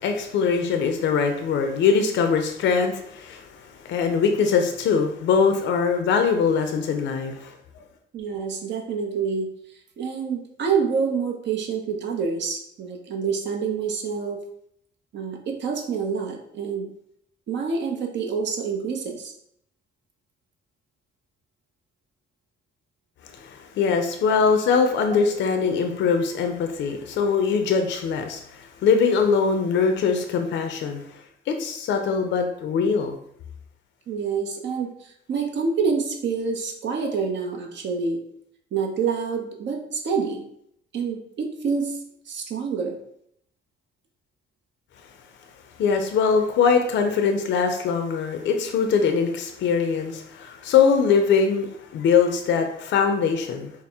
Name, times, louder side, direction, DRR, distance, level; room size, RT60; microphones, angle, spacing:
voice 1, 0.0-7.5 23.3-31.0 31.5-33.2 45.8-53.7, left 5 dB, 70° left, 5 dB, 0.5 m, -22 dB
voice 2, 8.1-9.5 10.0-14.4 15.1-16.9 17.5-19.3 24.3-24.4 25.1-25.3 34.1-38.2 38.7-40.4 40.9-42.0 42.3-43.0, right 5 dB, 65° right, 3 dB, 0.7 m, -27 dB
4.2 x 2.0 x 3.4 m, 0.70 s
cardioid pair, 90°, 20 cm